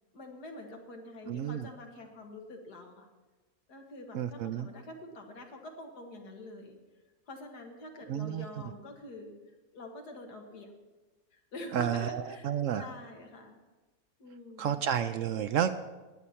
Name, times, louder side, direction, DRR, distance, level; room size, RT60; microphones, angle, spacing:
voice 1, 0.1-3.1 3.7-6.8 7.3-9.3 9.7-10.7 11.3-13.6 14.2-14.8, left 2 dB, 90° left, 3 dB, 2.2 m, -46 dB
voice 2, 1.3-1.7 4.1-4.7 8.1-8.4 11.7-12.8 14.6-15.7, right 9 dB, 70° right, 11 dB, 0.8 m, -31 dB
19.0 x 8.5 x 4.3 m, 1.2 s
omnidirectional pair, 1.7 m